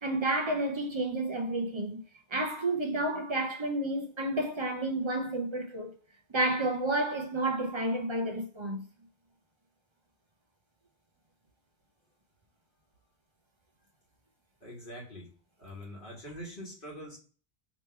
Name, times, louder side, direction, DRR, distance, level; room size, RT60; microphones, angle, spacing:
voice 1, 0.0-2.0 2.3-5.9 6.3-8.8, right 1 dB, 40° right, 0.4 m, -30 dB
voice 2, 14.6-15.3 15.6-17.2, equal, 55° left, 1.7 m, -44 dB
3.2 x 3.0 x 4.3 m
omnidirectional pair, 1.0 m